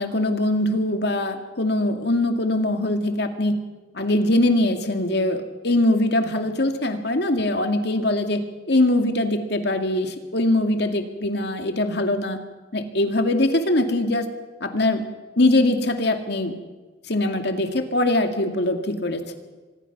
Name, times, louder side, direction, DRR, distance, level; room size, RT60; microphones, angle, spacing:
voice 1, 0.0-3.6 3.9-8.4 8.7-12.4 12.7-14.3 14.6-15.0 15.4-16.5 17.1-19.3, left 1 dB, 65° left, 6 dB, 2.2 m, -22 dB
25.0 x 20.0 x 6.0 m, 1.3 s
head